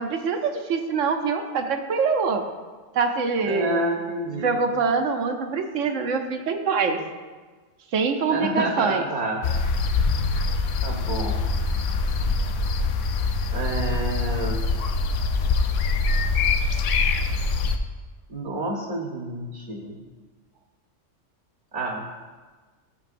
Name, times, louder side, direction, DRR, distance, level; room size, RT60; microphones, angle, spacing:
voice 1, 0.0-2.4 2.9-3.8 4.4-7.0 7.9-9.0, right 5 dB, 80° right, 6 dB, 1.1 m, -24 dB
voice 2, 3.4-4.6 8.3-9.4 10.8-11.4 13.5-14.7 18.3-20.0 21.7-22.1, right 1 dB, 40° right, -1 dB, 1.1 m, -29 dB
sound 1, 9.4-17.8, left 4 dB, 80° left, 1.0 m, -24 dB
13.5 x 7.5 x 2.6 m, 1.4 s
omnidirectional pair, 1.3 m